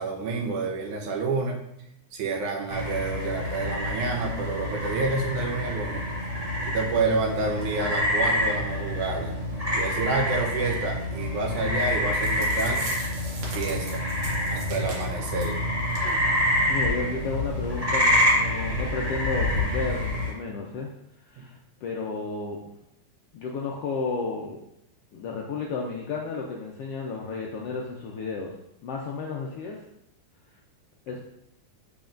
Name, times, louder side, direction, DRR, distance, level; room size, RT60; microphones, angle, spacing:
voice 1, 0.0-1.6 2.1-6.0 6.7-9.4 9.7-12.9 13.5-14.1 14.5-15.6 21.4-21.5, right 3 dB, 85° right, 0 dB, 2.5 m, -29 dB
sound 1, 2.7-20.3, left 1 dB, 15° right, 1.3 m, -27 dB
sound 2, 11.8-11.9 12.1-15.6 15.9-16.1 16.4-16.5 17.0-17.1, right 3 dB, 70° right, 2.6 m, -40 dB
voice 2, 16.7-20.9 21.3-22.6 23.3-24.6 25.1-28.5 28.8-29.8 31.1-31.2, left 4 dB, 75° left, -1 dB, 1.4 m, -32 dB
7.1 x 5.9 x 2.5 m, 0.79 s
omnidirectional pair, 3.4 m